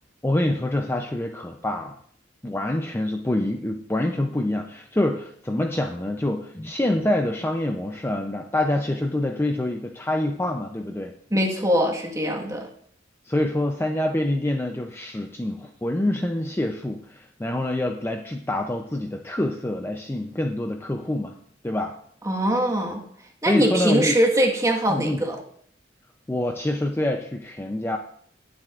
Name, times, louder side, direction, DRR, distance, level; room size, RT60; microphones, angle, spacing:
voice 1, 0.2-1.9 2.4-11.1 13.3-21.3 21.6-22.0 23.5-24.1 24.9-25.2 26.3-28.0, left 1 dB, 10° left, 4 dB, 0.5 m, -26 dB
voice 2, 11.3-12.6 22.2-23.0 23.4-25.4, equal, 15° right, 1 dB, 1.5 m, -22 dB
18.5 x 7.6 x 2.5 m, 0.63 s
head